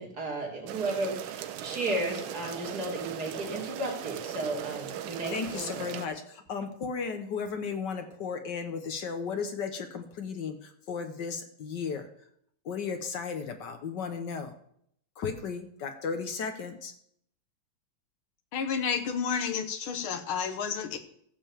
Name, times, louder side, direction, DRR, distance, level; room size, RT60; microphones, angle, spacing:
voice 1, 0.0-5.9, right 2 dB, 50° right, -1 dB, 3.1 m, -34 dB
sound 1, 0.7-6.1, right 10 dB, 80° right, 1.5 m, -39 dB
voice 2, 5.3-12.1 12.6-14.5 15.2-16.9, left 5 dB, 60° left, 7 dB, 1.6 m, -35 dB
voice 3, 18.5-21.0, left 6 dB, 90° left, 8 dB, 2.0 m, -31 dB
14.5 x 5.2 x 7.2 m, 0.68 s
omnidirectional pair, 2.2 m